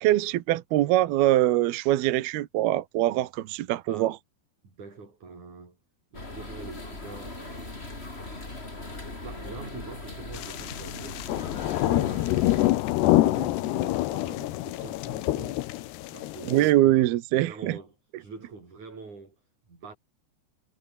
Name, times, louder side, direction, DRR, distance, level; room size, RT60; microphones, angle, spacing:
voice 1, 0.0-4.1 16.5-17.8, right 15 dB, 75° right, 2.9 m, -23 dB
voice 2, 3.9-4.2 4.6-5.8 6.1-8.0 9.2-12.7 13.0-15.6 16.1-17.1 17.4-19.4 19.7-20.0, right 4 dB, 45° right, 8.1 m, -44 dB
sound 1, 6.1-12.7, left 2 dB, 15° left, 3.6 m, -39 dB
sound 2, 10.3-16.7, left 17 dB, 80° left, 3.0 m, -26 dB
omnidirectional pair, 4.8 m